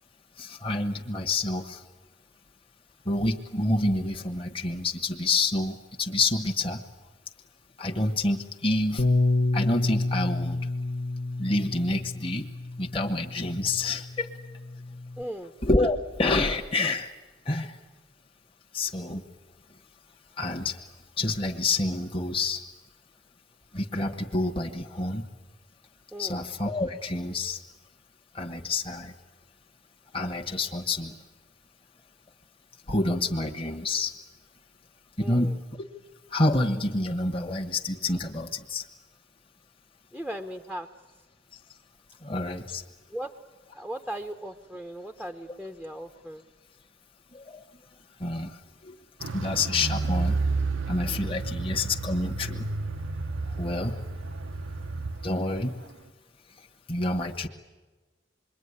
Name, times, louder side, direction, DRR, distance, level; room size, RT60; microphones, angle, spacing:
voice 1, 0.4-1.8 3.0-6.8 7.8-9.0 9.5-10.6 11.4-12.5 12.8-14.3 15.6-17.1 17.4-17.8 18.7-19.2 20.4-20.8 21.2-22.6 23.7-25.2 26.2-27.6 28.3-29.1 30.1-31.1 32.9-34.1 35.2-35.5 36.3-38.8 42.2-42.8 47.3-47.6 48.2-48.9 49.3-50.3 50.9-52.7 53.6-54.0 55.2-55.7 56.9-57.5, left 2 dB, 25° left, 1 dB, 1.3 m, -28 dB
Bass guitar, 9.0-15.2, left 2 dB, 45° left, 1.1 m, -29 dB
voice 2, 15.2-15.5 26.1-26.4 35.2-35.6 40.1-40.9 43.1-43.3 43.7-46.4, right 1 dB, ahead, 7 dB, 0.8 m, -37 dB
Car, 49.2-55.4 55.6-55.7, right 3 dB, 75° right, 0.8 m, -31 dB
27.0 x 22.0 x 9.8 m, 1.3 s
head